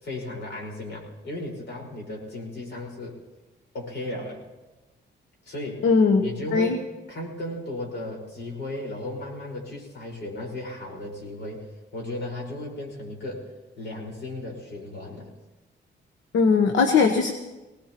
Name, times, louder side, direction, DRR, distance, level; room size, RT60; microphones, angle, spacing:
voice 1, 0.0-3.2 3.7-4.4 5.4-5.9 6.2-6.8 7.1-15.3, left 1 dB, 70° left, -1 dB, 4.8 m, -35 dB
voice 2, 5.8-6.8 16.3-17.3, left 4 dB, 90° left, 5 dB, 1.0 m, -20 dB
24.0 x 18.5 x 3.0 m, 1.1 s
cardioid pair, 145°, 19 cm